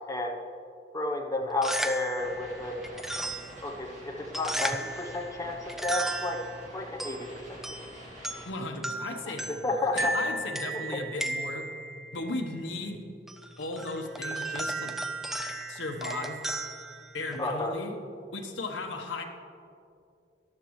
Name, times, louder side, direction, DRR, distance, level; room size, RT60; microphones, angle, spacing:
voice 1, 0.1-0.4 0.9-2.8 3.6-6.4 6.7-7.6 9.2-10.1 10.7-10.8 17.4-17.8, left 2 dB, 15° left, 2 dB, 0.8 m, -32 dB
sound 1, 1.4-17.7, right 1 dB, ahead, 0.3 m, -36 dB
sound 2, 2.2-8.5, right 1 dB, 40° right, 2.3 m, -47 dB
voice 2, 8.5-11.7 12.1-13.0 13.6-14.9 15.7-16.4 17.1-17.9 18.3-19.2, left 2 dB, 85° left, 3 dB, 1.1 m, -36 dB
13.5 x 12.0 x 3.2 m, 2.5 s
head